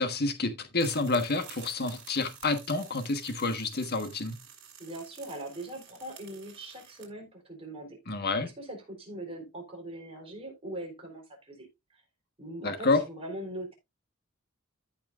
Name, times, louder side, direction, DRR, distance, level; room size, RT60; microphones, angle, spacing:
voice 1, 0.0-4.4 8.1-8.5 12.6-13.0, left 3 dB, 50° left, 1.3 m, -29 dB
sound 1, 0.8-7.1, right 8 dB, 60° right, 4.6 m, -51 dB
voice 2, 4.8-12.0 12.4-13.7, right 1 dB, 25° right, 3.8 m, -41 dB
14.0 x 6.0 x 2.5 m
head